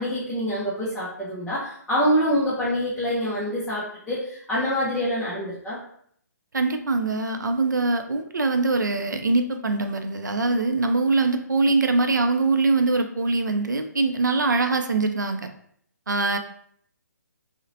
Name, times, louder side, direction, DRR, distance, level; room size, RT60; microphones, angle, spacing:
voice 1, 0.0-5.8, equal, 5° left, -11 dB, 0.4 m, -26 dB
voice 2, 6.5-15.4 16.1-16.4, right 3 dB, 85° right, 6 dB, 0.4 m, -23 dB
2.8 x 2.0 x 2.6 m, 0.66 s
figure-of-eight pair, 140°, 10 cm